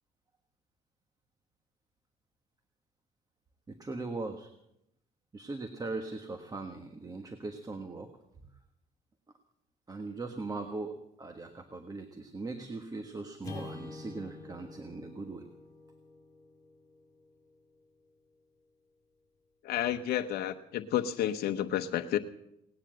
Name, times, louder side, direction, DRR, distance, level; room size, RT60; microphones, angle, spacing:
voice 1, 3.7-4.5 5.3-8.1 9.9-15.5, right 3 dB, 20° right, 6 dB, 1.4 m, -40 dB
Acoustic guitar / Strum, 13.4-17.9, left 2 dB, 20° left, 6.3 m, -47 dB
voice 2, 19.6-22.2, left 11 dB, 70° left, 6 dB, 0.9 m, -31 dB
18.5 x 10.0 x 7.7 m, 0.82 s
cardioid pair, 110°, 17 cm